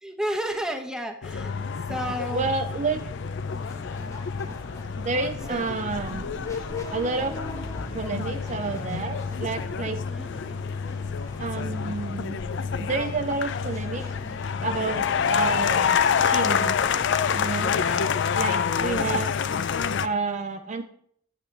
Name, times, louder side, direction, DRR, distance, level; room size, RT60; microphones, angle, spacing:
voice 1, 0.0-1.6 1.9-2.5 5.5-5.6 10.1-10.6 17.7-18.1 18.8-19.3, equal, 5° right, 4 dB, 0.9 m, -33 dB
sound 1, 1.2-20.1, left 7 dB, 60° left, 0.4 m, -27 dB
voice 2, 2.3-3.1 5.0-6.2 6.9-7.4 7.9-10.0 11.4-12.4 12.8-14.1 14.6-16.8 17.3-17.7 18.3-19.3 20.0-20.8, right 4 dB, 35° right, 7 dB, 0.4 m, -30 dB
sound 2, 2.9-18.0, equal, 15° left, 1.1 m, -43 dB
8.8 x 8.3 x 3.3 m, 0.66 s
head